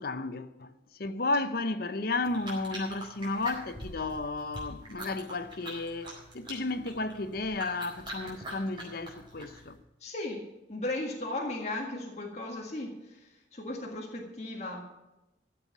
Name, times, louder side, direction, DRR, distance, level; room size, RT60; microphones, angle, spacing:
voice 1, 0.0-9.8, left 3 dB, 50° left, 0.8 m, -33 dB
sound 1, 2.2-9.8, right 1 dB, 25° right, 4.3 m, -44 dB
voice 2, 10.0-10.4 10.7-14.9, left 2 dB, 35° left, 1.8 m, -36 dB
14.0 x 7.3 x 7.3 m
head